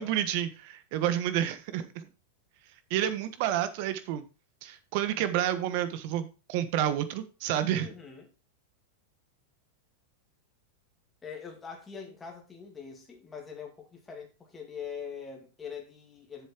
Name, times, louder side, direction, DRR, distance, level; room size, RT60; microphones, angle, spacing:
voice 1, 0.0-2.0 2.9-4.2 4.6-7.9, right 11 dB, 50° right, 1.3 m, -29 dB
voice 2, 7.8-8.3 11.2-16.5, left 6 dB, 10° left, 2.5 m, -43 dB
7.4 x 7.3 x 4.5 m
supercardioid pair, 155°, 0 cm